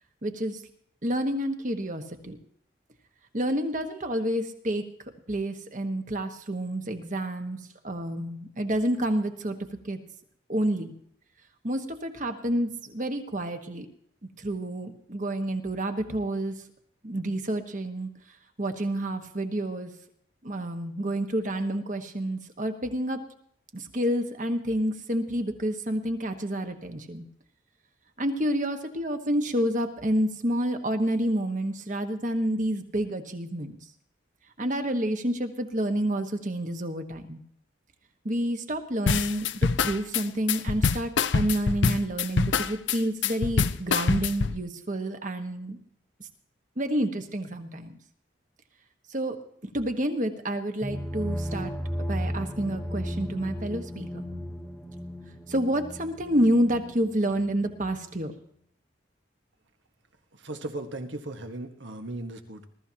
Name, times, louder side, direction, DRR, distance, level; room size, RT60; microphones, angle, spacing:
voice 1, 0.2-0.6 1.0-2.4 3.3-4.8 5.3-7.6 7.8-9.6 9.8-10.0 10.5-10.9 11.6-13.8 14.4-16.5 17.0-18.1 18.6-19.9 20.4-23.2 23.7-27.2 28.2-33.7 34.6-37.4 38.2-45.8 46.8-47.9 49.1-49.4 49.7-51.7 52.0-54.2 55.5-58.3, right 1 dB, 40° right, 6 dB, 1.4 m, -29 dB
sound 1, 39.1-44.6, left 5 dB, 80° left, 0.6 m, -25 dB
sound 2, 50.8-58.5, equal, ahead, 1.1 m, -35 dB
voice 2, 60.4-62.7, right 2 dB, 80° right, 6 dB, 1.6 m, -37 dB
21.5 x 13.5 x 2.9 m, 0.68 s
head